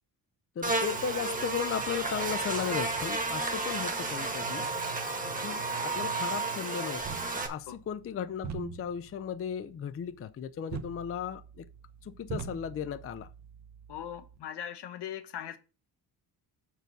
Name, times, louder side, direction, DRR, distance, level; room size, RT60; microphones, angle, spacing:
voice 1, 0.6-4.7 5.4-7.0 7.3-11.7 12.0-13.3, left 8 dB, 35° left, 0.5 m, -36 dB
Buzz, 0.6-7.5, right 3 dB, 20° right, 1.4 m, -32 dB
sound 1, 7.0-14.4, right 7 dB, 45° right, 0.9 m, -44 dB
voice 2, 13.9-15.6, left 10 dB, 75° left, 1.1 m, -40 dB
6.6 x 4.6 x 6.1 m
cardioid pair, 140°, 40 cm